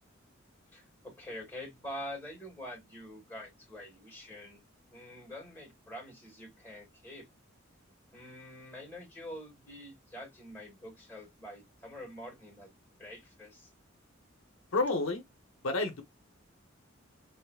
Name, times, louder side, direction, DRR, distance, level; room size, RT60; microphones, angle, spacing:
voice 1, 0.7-4.6 4.9-7.3 8.1-12.7 13.0-13.7, left 1 dB, 10° left, 2.0 m, -46 dB
voice 2, 14.7-15.2 15.6-16.0, left 3 dB, 80° left, 0.7 m, -29 dB
3.4 x 2.5 x 2.3 m
head